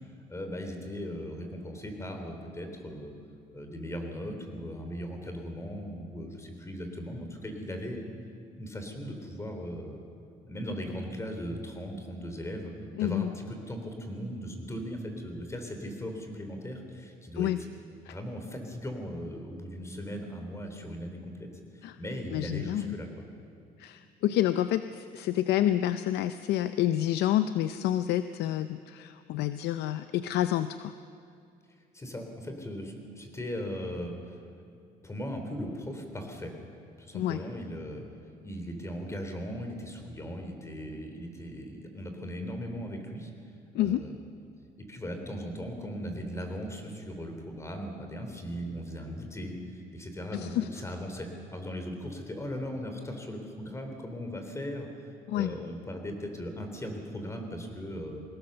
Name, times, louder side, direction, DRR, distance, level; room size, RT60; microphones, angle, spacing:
voice 1, 0.3-3.1 3.5-8.0 8.6-10.0 10.4-12.7 13.0-17.5 18.1-21.5 21.7-23.2 31.9-34.4 35.0-36.5 37.0-38.0 38.4-43.3 43.8-44.2 44.8-58.2, equal, 15° left, 4 dB, 3.5 m, -38 dB
voice 2, 13.0-13.3 17.4-17.6 18.1-18.2 21.8-22.0 22.3-23.0 23.8-30.9 37.1-37.4 43.7-44.0 50.3-50.7 55.3-55.5, left 12 dB, 80° left, 11 dB, 0.6 m, -28 dB
22.0 x 17.5 x 6.9 m, 2.4 s
cardioid pair, 110°, 17 cm